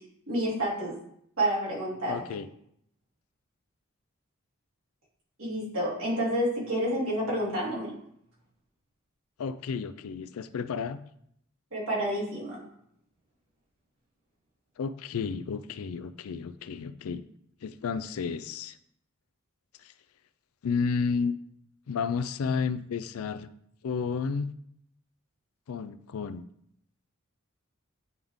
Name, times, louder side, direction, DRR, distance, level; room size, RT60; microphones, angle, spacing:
voice 1, 0.3-0.9 1.4-2.2 5.4-7.9 11.7-12.6, right 1 dB, 80° right, -5 dB, 2.7 m, -29 dB
voice 2, 2.1-2.5 9.4-11.0 14.8-17.2 17.6-18.8 19.8-19.9 20.6-21.4 21.9-23.5 23.8-24.5 25.7-26.4, left 5 dB, 85° left, 13 dB, 0.4 m, -32 dB
9.5 x 3.5 x 3.6 m, 0.70 s
head